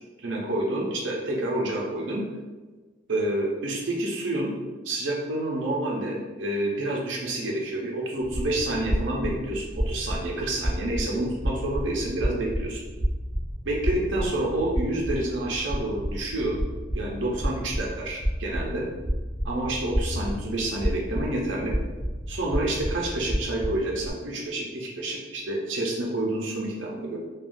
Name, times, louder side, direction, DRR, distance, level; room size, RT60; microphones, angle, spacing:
voice 1, 0.2-2.2 3.1-4.5 4.8-12.8 13.6-16.6 16.9-18.9 19.4-21.8 22.3-27.2, right 1 dB, 70° right, -2 dB, 0.6 m, -28 dB
sound 1, 8.2-24.1, equal, 10° right, 0.8 m, -31 dB
3.5 x 2.3 x 2.5 m, 1.3 s
head